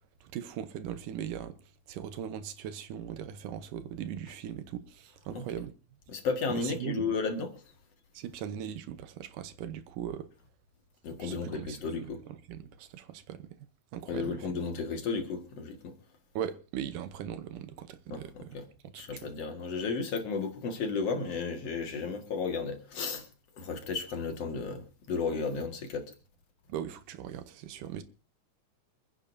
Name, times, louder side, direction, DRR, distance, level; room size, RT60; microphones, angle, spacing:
voice 1, 0.2-1.6 1.9-5.7 6.5-7.1 8.1-10.3 11.2-11.8 12.3-13.5 13.9-14.6 16.4-18.6 18.9-19.2 26.7-28.0, right 9 dB, 90° right, 2.5 m, -39 dB
voice 2, 6.1-7.5 11.0-12.2 14.1-15.9 18.1-18.6 19.0-23.2 23.6-26.1, left 4 dB, 55° left, 2.8 m, -33 dB
27.0 x 9.9 x 2.7 m
omnidirectional pair, 3.6 m